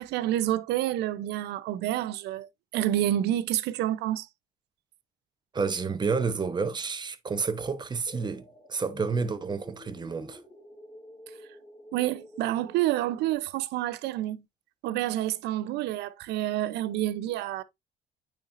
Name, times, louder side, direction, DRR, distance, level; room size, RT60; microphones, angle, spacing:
voice 1, 0.0-4.3 11.9-14.4 14.8-17.6, right 13 dB, 85° right, 0.7 m, -28 dB
voice 2, 5.5-10.4, right 5 dB, 25° right, 0.9 m, -30 dB
sound 1, 8.1-13.4, left 1 dB, 15° left, 3.4 m, -49 dB
8.9 x 4.5 x 2.6 m
cardioid pair, 110°, 17 cm